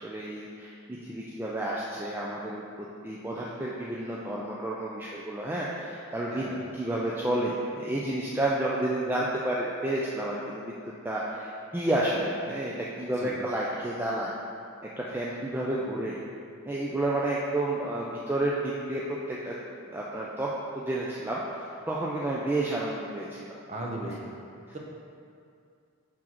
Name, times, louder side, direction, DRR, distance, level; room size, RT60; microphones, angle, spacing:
voice 1, 0.0-2.6 3.0-10.8 11.0-14.3 15.0-16.2 16.7-19.5 19.8-20.5 20.7-23.6, right 1 dB, 10° right, -5 dB, 0.3 m, -30 dB
voice 2, 23.7-24.3, right 1 dB, 30° right, -1 dB, 0.7 m, -36 dB
6.1 x 5.9 x 3.0 m, 2.4 s
head